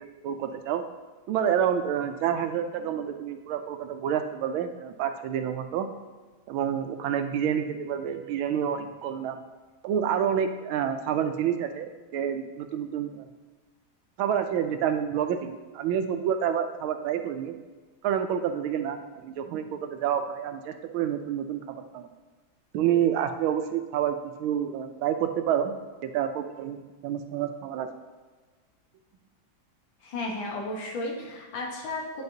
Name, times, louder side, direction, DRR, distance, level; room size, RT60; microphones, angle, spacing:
voice 1, 0.2-0.8 1.3-5.9 6.5-9.4 9.8-13.3 14.2-17.6 18.0-19.0 19.2-22.1 22.7-25.8 26.0-26.8 27.0-27.9, right 9 dB, 85° right, 8 dB, 1.4 m, -28 dB
voice 2, 30.0-32.2, left 2 dB, 70° left, -1 dB, 1.9 m, -34 dB
9.5 x 4.8 x 2.7 m, 1.3 s
omnidirectional pair, 2.2 m